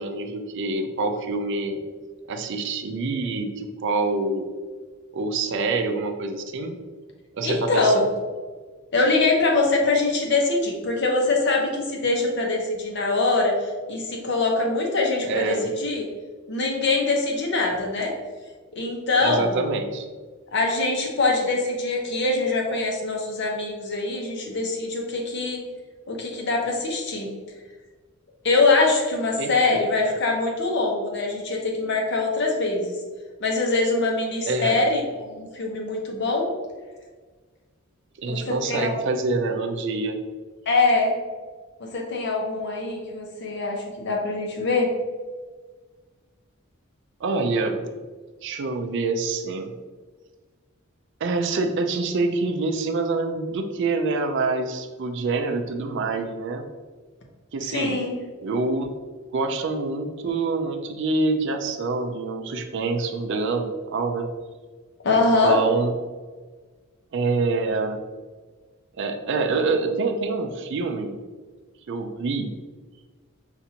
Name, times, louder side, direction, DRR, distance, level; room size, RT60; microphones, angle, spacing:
voice 1, 0.0-1.8 2.3-4.5 5.1-6.8 7.3-8.1 15.2-15.7 19.2-20.1 29.4-29.5 34.5-34.9 38.2-40.2 47.2-47.9 48.4-49.7 51.2-56.7 57.5-58.0 58.4-58.9 59.3-64.3 65.1-65.9 67.1-68.0 69.0-71.1 71.9-72.5, right 3 dB, 60° right, 6 dB, 0.4 m, -26 dB
voice 2, 7.4-8.1 8.9-16.1 16.5-18.1 18.7-19.5 20.5-25.6 26.1-27.3 28.4-33.0 33.4-36.5 38.3-39.0 40.7-41.1 41.8-44.9 57.7-58.2 65.0-65.6, left 3 dB, 55° left, 0 dB, 0.8 m, -23 dB
5.7 x 2.5 x 2.8 m, 1.4 s
head